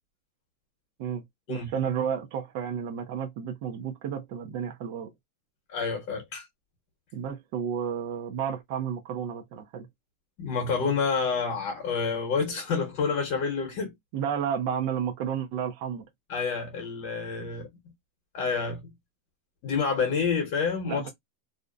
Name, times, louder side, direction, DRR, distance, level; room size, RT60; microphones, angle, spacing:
voice 1, 1.5-5.1 7.1-9.9 14.1-16.1 20.9-21.1, right 8 dB, 45° right, 0.5 m, -31 dB
voice 2, 5.7-6.5 10.4-13.9 16.3-17.7 18.3-18.8 19.6-21.0, left 5 dB, 40° left, 0.9 m, -28 dB
2.5 x 2.1 x 2.4 m
supercardioid pair, 170°, 0 cm